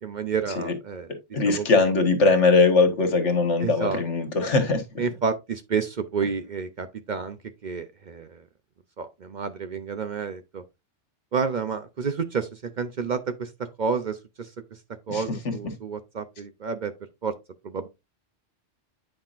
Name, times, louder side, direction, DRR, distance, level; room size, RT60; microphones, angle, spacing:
voice 1, 0.0-1.1 1.5-1.7 3.6-4.0 5.0-8.4 9.0-10.6 11.3-14.5 15.1-16.9 17.2-17.3 17.6-17.9, right 5 dB, 50° right, 0.7 m, -30 dB
voice 2, 1.3-4.8 15.1-15.2, left 3 dB, 80° left, 1.7 m, -20 dB
8.9 x 5.7 x 2.5 m
omnidirectional pair, 1.2 m